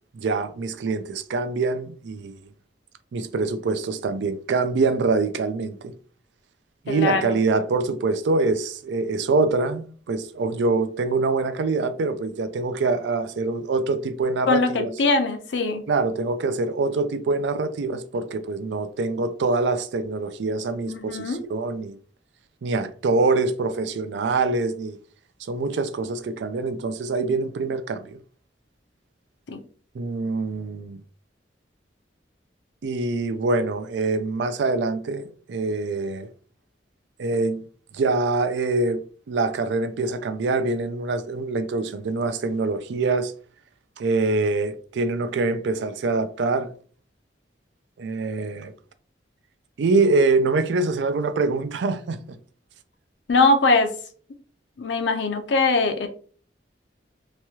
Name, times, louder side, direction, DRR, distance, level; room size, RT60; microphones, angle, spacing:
voice 1, 0.1-2.3 3.1-5.9 6.9-14.9 15.9-22.0 22.6-25.0 25.5-28.2 29.9-31.0 32.8-36.3 37.2-37.6 37.9-39.0 39.3-43.3 44.0-46.7 48.0-48.7 49.8-52.4, right 3 dB, 80° right, 0.4 m, -24 dB
voice 2, 6.9-7.4 14.5-15.8 20.9-21.4 29.5-29.6 53.3-53.9 54.8-56.1, left 3 dB, 80° left, 0.5 m, -21 dB
3.0 x 2.3 x 2.8 m
head